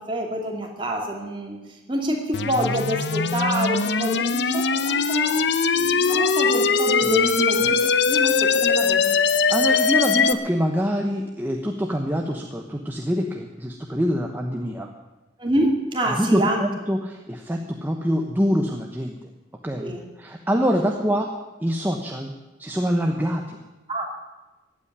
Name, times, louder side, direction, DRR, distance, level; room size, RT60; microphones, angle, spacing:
voice 1, 0.0-1.6 1.9-5.4 5.7-9.1 15.4-16.6 19.8-20.0 23.9-24.1, right 1 dB, 25° right, 0 dB, 2.6 m, -26 dB
sound 1, 2.3-10.3, left 5 dB, 65° left, 0.7 m, -21 dB
voice 2, 9.5-14.9 16.1-19.1 19.6-19.9 20.2-21.3 21.6-22.3 22.6-23.6, equal, 10° right, 2 dB, 1.0 m, -25 dB
15.5 x 8.7 x 9.7 m, 1.1 s
head